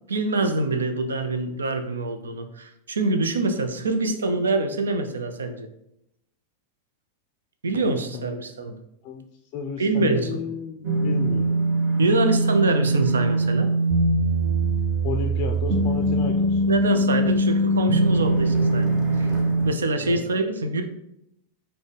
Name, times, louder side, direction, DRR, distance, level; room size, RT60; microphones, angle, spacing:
voice 1, 0.1-5.7 7.6-8.8 9.8-10.4 12.0-13.7 16.7-19.4 19.6-20.8, right 2 dB, 85° right, 7 dB, 0.4 m, -25 dB
voice 2, 9.5-11.6 15.0-16.6 20.0-20.3, left 6 dB, 45° left, 4 dB, 0.3 m, -32 dB
sound 1, 10.8-19.7, right 2 dB, 40° right, 0.8 m, -22 dB
4.1 x 2.1 x 3.2 m, 0.80 s
hypercardioid pair, 100°, 0 cm